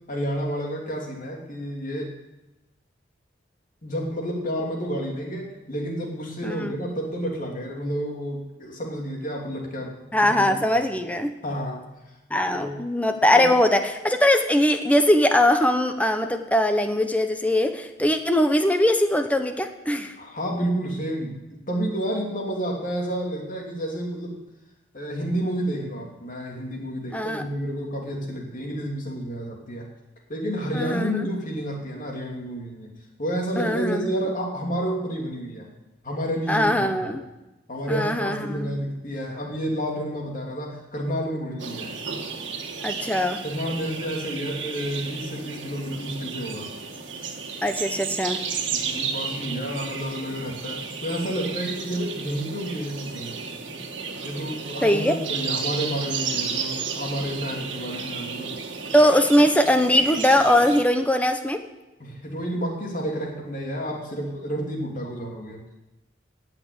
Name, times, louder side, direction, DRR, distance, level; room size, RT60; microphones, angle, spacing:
voice 1, 0.1-2.1 3.8-10.9 11.4-11.8 12.4-12.8 13.3-13.5 20.2-24.4 24.9-29.9 30.3-32.9 33.2-35.7 36.0-37.1 37.7-42.0 43.4-46.7 48.7-53.4 54.2-58.6 62.0-65.6, equal, 45° left, 0 dB, 2.9 m, -30 dB
voice 2, 6.4-6.8 10.1-11.3 12.3-20.1 27.1-27.4 30.7-31.3 33.6-34.1 36.5-37.2 37.9-38.7 42.8-43.4 47.6-48.4 54.8-55.1 58.9-61.6, left 1 dB, 10° left, 6 dB, 1.0 m, -21 dB
sound 1, 41.6-60.8, right 5 dB, 75° right, 1.7 m, -33 dB
17.5 x 5.9 x 8.8 m, 1.0 s
head